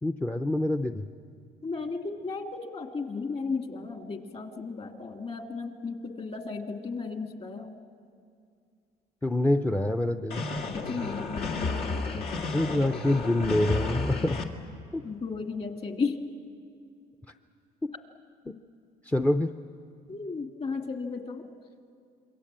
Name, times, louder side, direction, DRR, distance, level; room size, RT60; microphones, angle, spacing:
voice 1, 0.0-1.1 9.2-10.5 12.5-14.4 14.9-15.0 18.5-18.6 19.0-19.5, left 1 dB, 10° left, 6 dB, 0.6 m, -26 dB
voice 2, 1.6-7.7 10.7-12.6 15.0-16.2 20.1-21.5, left 4 dB, 35° left, 5 dB, 2.2 m, -35 dB
sound 1, 10.3-14.4, left 3 dB, 70° left, 2.1 m, -32 dB
27.5 x 22.5 x 7.5 m, 2.3 s
cardioid pair, 110°, 17 cm